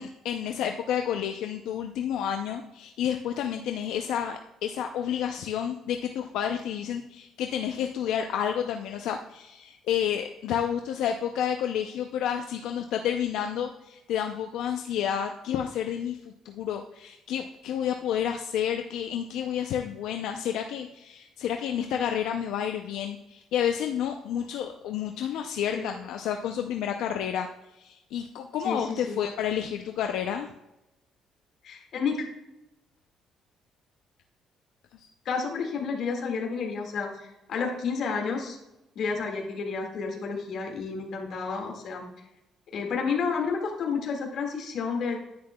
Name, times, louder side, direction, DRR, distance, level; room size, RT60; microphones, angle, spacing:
voice 1, 0.0-27.5 27.7-30.5 34.9-35.1, left 9 dB, 85° left, 4 dB, 0.5 m, -30 dB
voice 2, 28.6-29.2 31.6-32.2 35.3-37.1 37.5-38.6 39.0-42.0 42.7-45.2, left 5 dB, 55° left, 1 dB, 1.9 m, -30 dB
10.0 x 9.7 x 2.3 m, 0.93 s
cardioid pair, 150°, 0 cm